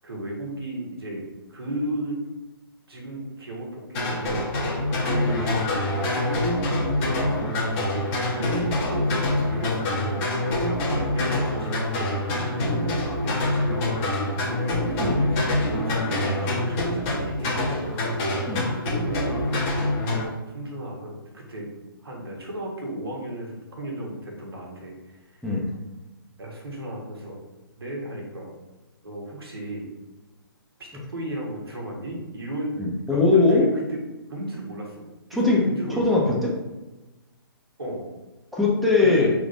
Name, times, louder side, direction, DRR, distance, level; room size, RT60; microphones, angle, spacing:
voice 1, 0.0-2.2 2.9-6.5 7.0-7.9 8.3-12.1 13.2-18.1 18.9-19.7 20.1-21.7 22.0-25.5 26.4-27.4 27.8-28.5 29.0-29.9 30.8-32.8 33.1-34.0 34.3-36.0 37.8-38.1 39.0-39.3, right 1 dB, 80° right, -2 dB, 1.5 m, -35 dB
sound 1, 3.9-20.2, left 1 dB, 30° left, 0.9 m, -25 dB
voice 2, 32.8-33.7 35.4-35.6 36.0-36.5 38.5-39.3, left 3 dB, ahead, -4 dB, 0.8 m, -20 dB
5.0 x 3.5 x 2.6 m, 1.1 s
figure-of-eight pair, 135°, 13 cm